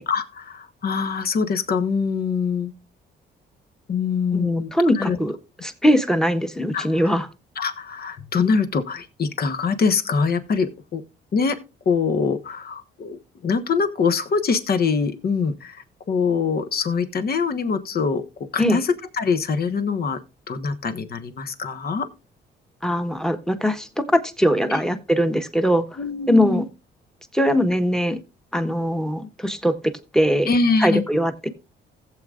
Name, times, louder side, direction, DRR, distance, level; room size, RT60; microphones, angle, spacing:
voice 1, 0.1-2.7 3.9-4.7 4.9-5.2 6.7-7.2 7.6-11.0 11.3-11.6 11.8-18.2 18.5-20.2 20.5-22.1 26.0-26.6 30.5-31.0, left 5 dB, 50° left, 1.3 m, -24 dB
voice 2, 4.3-5.4 5.6-7.3 18.6-18.8 22.8-26.0 26.3-26.6 27.3-28.2 28.5-29.7 30.1-30.5 30.8-31.3, equal, 5° left, 1.3 m, -21 dB
16.5 x 7.9 x 2.5 m
cardioid pair, 90°, 20 cm